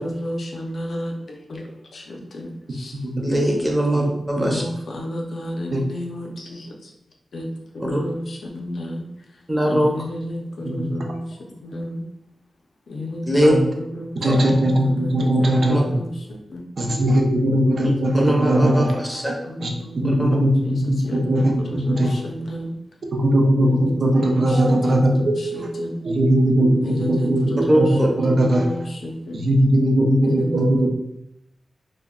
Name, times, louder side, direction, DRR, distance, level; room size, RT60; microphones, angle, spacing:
voice 1, 0.0-3.0 4.0-4.1 4.4-6.9 7.3-7.5 7.7-9.1 9.8-12.0 12.9-13.4 13.8-16.7 18.0-18.2 19.4-20.3 20.6-22.7 23.7-26.0 26.8-29.5 30.2-30.9, left 1 dB, 65° left, 0 dB, 0.5 m, -32 dB
voice 2, 3.2-4.6 7.8-8.0 9.5-9.9 13.3-13.5 14.3-14.4 15.7-15.8 18.1-19.3 20.0-20.3 27.7-28.1, equal, 5° right, -1 dB, 0.6 m, -20 dB
voice 3, 14.2-15.9 16.8-18.9 19.3-19.4 19.6-19.7 20.0-22.1 23.1-25.7 26.0-27.9 28.2-28.7 29.3-30.9, right 1 dB, 60° right, 1 dB, 0.4 m, -19 dB
2.2 x 2.1 x 3.5 m, 0.80 s
wide cardioid pair, 120°, 0 cm